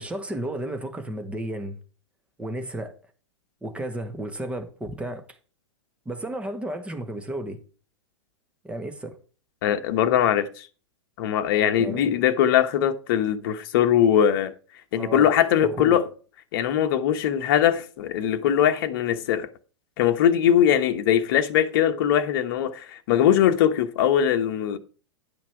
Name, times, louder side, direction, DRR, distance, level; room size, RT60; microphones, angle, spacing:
voice 1, 0.0-1.8 2.4-2.9 3.6-5.2 6.0-7.6 8.6-9.2 11.8-12.2 15.0-15.3 15.6-16.0, right 1 dB, 10° right, 1.5 m, -33 dB
voice 2, 9.6-10.7 11.2-14.5 14.9-16.0 16.5-19.5 20.0-24.8, left 9 dB, 45° left, 1.2 m, -21 dB
10.5 x 6.0 x 4.6 m
figure-of-eight pair, 105°, 15 cm